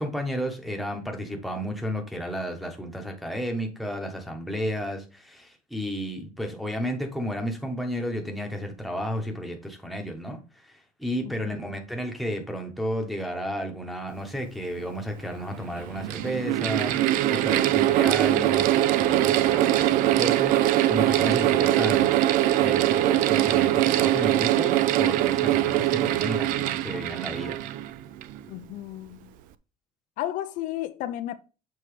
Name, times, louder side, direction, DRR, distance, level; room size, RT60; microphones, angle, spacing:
voice 1, 0.0-27.6, equal, ahead, 1.0 m, -32 dB
Mechanical fan, 14.8-14.9 15.7-28.4, right 13 dB, 75° right, 0.5 m, -22 dB
voice 2, 28.5-29.3 30.2-31.3, left 13 dB, 65° left, 0.5 m, -33 dB
6.9 x 4.5 x 3.1 m
cardioid pair, 170°, 14 cm